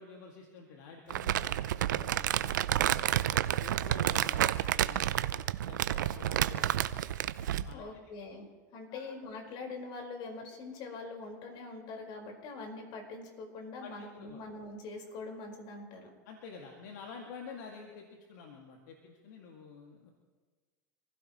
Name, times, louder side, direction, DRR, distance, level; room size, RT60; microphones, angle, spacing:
voice 1, 0.0-5.3 5.7-7.1 7.6-7.8 8.1-8.5 8.9-9.1 13.8-14.4 16.3-20.1, left 5 dB, 70° left, 1 dB, 2.2 m, -49 dB
Crumpling crinkling, 1.1-7.7, right 12 dB, 80° right, 0.6 m, -30 dB
voice 2, 7.7-8.5 8.7-16.1, left 3 dB, 50° left, 2 dB, 4.9 m, -43 dB
27.0 x 16.0 x 3.1 m, 1.4 s
hypercardioid pair, 95°, 10 cm